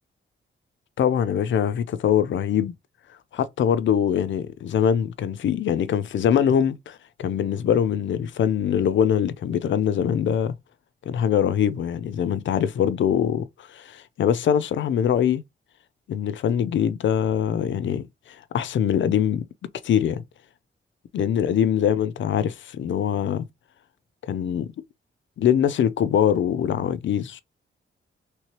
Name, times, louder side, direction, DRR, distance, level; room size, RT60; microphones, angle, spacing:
voice 1, 1.0-2.7 3.3-10.5 11.1-15.4 16.1-19.5 19.8-20.2 21.1-23.5 24.3-24.7 25.4-27.4, left 9 dB, 65° left, 0.4 m, -23 dB
3.1 x 3.1 x 2.9 m
wide cardioid pair, 150°, 21 cm